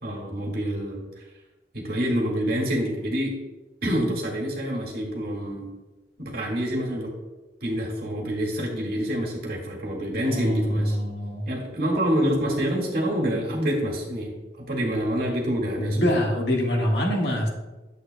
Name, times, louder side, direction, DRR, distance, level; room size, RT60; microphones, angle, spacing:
voice 1, 0.0-1.0 1.7-3.3 3.8-5.7 6.2-7.1 7.6-11.0 11.5-16.2, equal, 55° right, -2 dB, 1.8 m, -27 dB
voice 2, 10.3-11.4 15.8-17.5, equal, 65° left, 0 dB, 1.5 m, -24 dB
9.4 x 8.0 x 2.2 m, 1.1 s
head